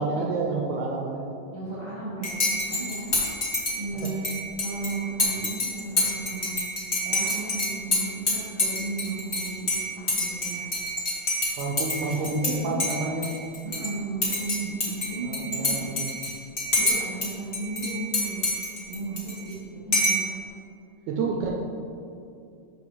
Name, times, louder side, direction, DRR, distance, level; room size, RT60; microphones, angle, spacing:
voice 1, 0.0-1.4 4.0-4.1 11.6-13.3 15.2-16.3 21.1-21.5, right 3 dB, 80° right, 0 dB, 2.0 m, -29 dB
voice 2, 1.5-3.1 3.8-4.3 4.6-6.5 7.0-9.6 10.0-10.9 12.0-12.8 13.6-15.8 16.7-18.4 18.8-20.4 21.3-21.5, right 3 dB, 25° right, -10 dB, 0.6 m, -35 dB
Dishes pots and pans / Cutlery silverware / Chink clink, 2.2-12.5 12.8-13.9 14.2-17.3 17.5-19.5 19.9-20.3, left 1 dB, 30° left, 1.0 m, -27 dB
11.0 x 4.9 x 3.2 m, 2.6 s
omnidirectional pair, 3.4 m